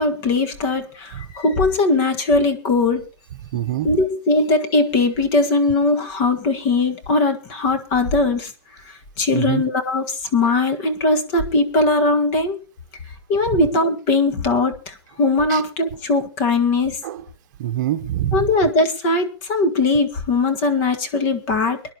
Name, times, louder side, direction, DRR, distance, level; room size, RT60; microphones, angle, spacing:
voice 1, 0.0-3.0 3.8-8.5 8.8-12.6 13.3-17.0 18.3-21.8, left 3 dB, 30° left, 7 dB, 1.6 m, -20 dB
voice 2, 3.5-4.0 9.3-9.6 10.4-10.5 13.5-13.6 15.5-15.6 17.0-17.2 17.6-18.5, right 12 dB, 45° right, 9 dB, 1.1 m, -25 dB
24.0 x 10.5 x 2.9 m, 0.33 s
hypercardioid pair, 165°, 14 cm